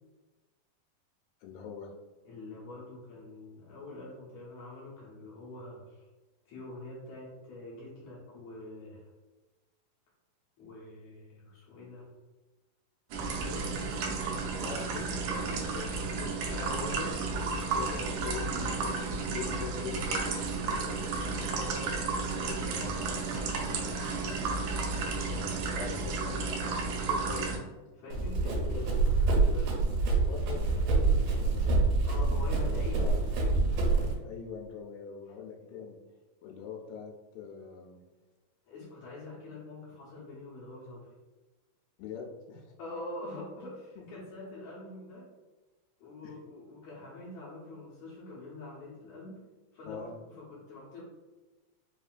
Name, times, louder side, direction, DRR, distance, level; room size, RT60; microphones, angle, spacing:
voice 1, 1.4-1.9 14.6-15.5 15.7-17.1 17.7-21.3 22.4-27.5 28.4-29.0 30.3-31.1 31.4-32.0 32.5-33.1 33.9-36.0 36.4-38.0 42.0-42.7 46.2-46.3 49.9-50.2, left 5 dB, 90° left, -1 dB, 2.3 m, -44 dB
voice 2, 2.3-6.1 6.5-9.1 10.6-12.1 13.3-15.2 16.5-17.3 17.7-18.3 21.4-22.4 27.9-29.8 32.0-33.1 38.7-41.1 42.8-45.3 46.0-49.4 49.7-51.0, left 2 dB, 65° left, -6 dB, 2.0 m, -44 dB
sound 1, 13.1-27.6, right 4 dB, 90° right, 1.6 m, -32 dB
Run, 28.1-34.1, right 3 dB, 70° right, 2.1 m, -26 dB
5.2 x 2.8 x 2.4 m, 1.2 s
omnidirectional pair, 4.0 m